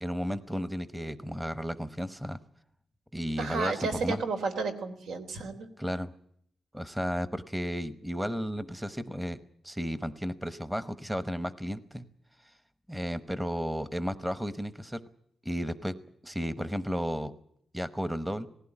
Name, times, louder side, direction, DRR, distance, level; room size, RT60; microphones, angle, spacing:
voice 1, 0.0-2.4 3.1-4.2 5.8-6.1 6.7-9.4 9.6-12.0 12.4-12.5 12.9-15.0 15.4-16.0 16.2-17.3 17.7-18.5, equal, 5° right, 14 dB, 0.9 m, -33 dB
voice 2, 3.4-5.7, right 4 dB, 80° right, 6 dB, 3.6 m, -32 dB
19.0 x 16.0 x 10.0 m, 0.68 s
wide cardioid pair, 140°, 0 cm